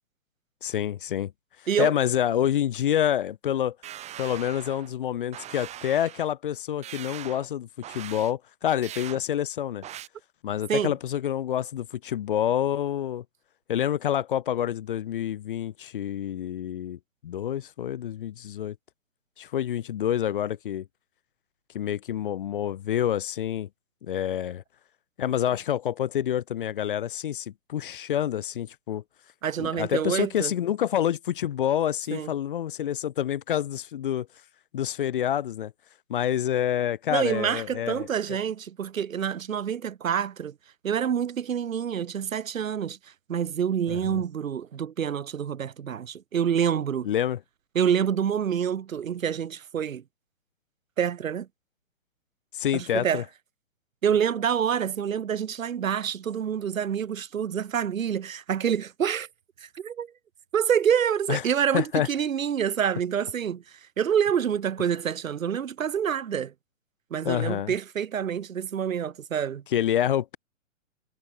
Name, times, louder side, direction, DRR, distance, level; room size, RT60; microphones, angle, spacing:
voice 1, 0.6-1.3 1.8-3.8 4.2-7.7 7.9-9.8 10.4-13.2 13.7-18.8 19.4-20.9 21.7-23.7 24.0-24.6 25.2-29.0 29.6-34.3 34.7-35.7 36.1-38.1 43.9-44.2 47.0-47.4 52.5-53.2 61.3-61.4 61.7-62.1 67.2-67.7 69.7-70.4, left 10 dB, 45° left, 0.5 m, -27 dB
sound 1, 3.8-4.9 5.3-6.3 6.8-7.5 7.8-8.3 8.8-9.2 9.8-10.1, right 12 dB, 15° right, 3.3 m, -41 dB
voice 2, 29.4-30.5 32.1-32.3 37.1-40.5 40.8-43.0 43.3-47.1 47.7-50.0 51.0-51.5 52.7-53.2 54.0-59.3 59.6-60.1 60.5-66.5 67.1-69.6, right 8 dB, 90° right, 0.7 m, -27 dB
hypercardioid pair, 135°, 39 cm